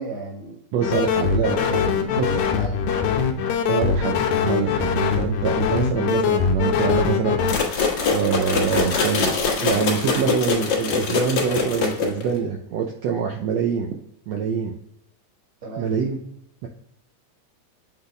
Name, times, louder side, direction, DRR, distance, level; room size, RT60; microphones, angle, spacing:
voice 1, 0.0-0.6 1.4-1.5 1.8-3.1 15.6-15.9, right 3 dB, 25° right, -1 dB, 1.9 m, -35 dB
voice 2, 0.7-1.8 2.2-2.3 3.7-7.4 8.0-13.9 14.3-14.8 15.8-16.2 16.6-16.7, right 7 dB, 70° right, 1 dB, 1.7 m, -25 dB
sound 1, 0.8-7.6, left 6 dB, 85° left, 2.2 m, -22 dB
sound 2, 7.5-12.4, left 5 dB, 60° left, 2.1 m, -23 dB
8.0 x 3.9 x 3.3 m, 0.75 s
omnidirectional pair, 3.4 m